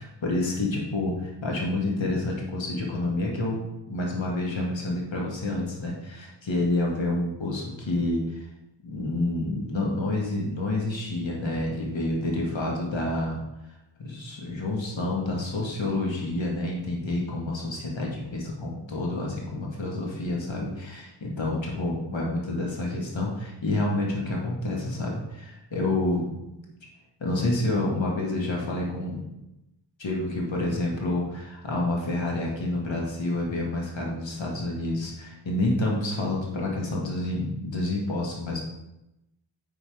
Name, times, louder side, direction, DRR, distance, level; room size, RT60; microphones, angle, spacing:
voice 1, 0.0-8.4 8.8-13.4 14.0-26.3 27.2-29.3 30.0-38.6, left 2 dB, 85° left, -2 dB, 1.9 m, -28 dB
9.8 x 4.0 x 4.9 m, 0.91 s
wide cardioid pair, 70°, 45 cm